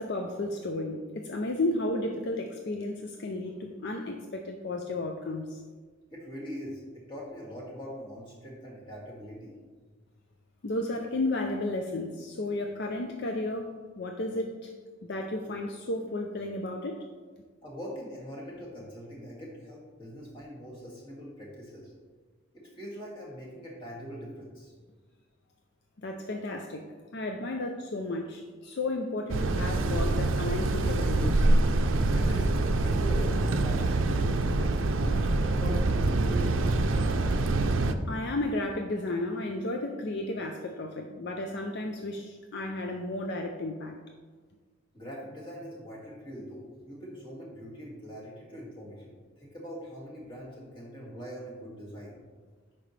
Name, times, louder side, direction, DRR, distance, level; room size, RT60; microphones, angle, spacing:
voice 1, 0.0-5.6 10.6-13.7 14.0-14.7 15.0-17.0 26.0-26.8 27.1-31.6 38.1-44.0, left 2 dB, 60° left, 3 dB, 0.5 m, -33 dB
voice 2, 6.1-9.5 17.6-21.9 22.5-24.7 32.1-36.6 44.9-52.2, equal, 25° left, -5 dB, 2.2 m, -42 dB
sound 1, 29.3-37.9, right 2 dB, 75° right, 0.5 m, -25 dB
8.8 x 5.6 x 3.3 m, 1.5 s
head